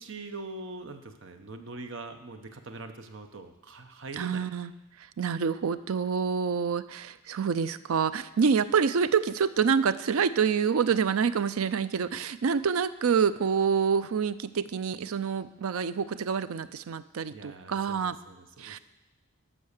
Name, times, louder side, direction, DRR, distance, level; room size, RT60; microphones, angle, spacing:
voice 1, 0.0-4.5 17.3-18.8, right 3 dB, 60° right, 7 dB, 0.9 m, -43 dB
voice 2, 4.2-4.7 5.2-18.2 18.6-18.8, right 6 dB, 75° right, 14 dB, 0.5 m, -27 dB
12.5 x 5.6 x 6.6 m, 1.0 s
head